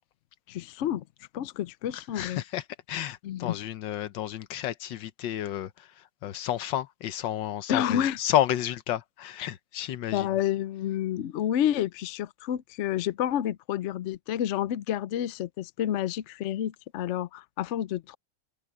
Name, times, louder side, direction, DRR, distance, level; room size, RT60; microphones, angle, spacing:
voice 1, 0.5-1.0 1.3-2.4 3.2-3.5 7.7-8.2 10.1-18.2, left 11 dB, 70° left, 0.6 m, -29 dB
voice 2, 1.9-2.6 2.9-5.9 6.2-10.3, left 12 dB, 85° left, 1.6 m, -31 dB
omnidirectional pair, 1.9 m